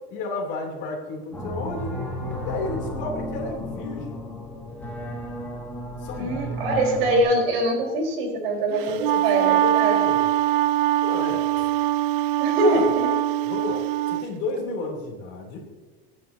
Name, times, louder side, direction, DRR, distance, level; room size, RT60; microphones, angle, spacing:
voice 1, 0.1-1.9 2.4-4.2 6.0-6.4 8.7-10.2 11.0-11.7 12.6-12.9 13.4-15.6, left 3 dB, 40° left, -1 dB, 3.2 m, -32 dB
sound 1, 1.3-7.2, equal, 5° left, 1.7 m, -33 dB
voice 2, 6.2-10.0 12.4-13.1, right 1 dB, 85° right, 0 dB, 4.4 m, -23 dB
Wind instrument woodwind instrument, 8.8-14.3, right 14 dB, 65° right, 0.5 m, -23 dB
22.5 x 9.8 x 2.8 m, 1.3 s
supercardioid pair, 175°, 30 cm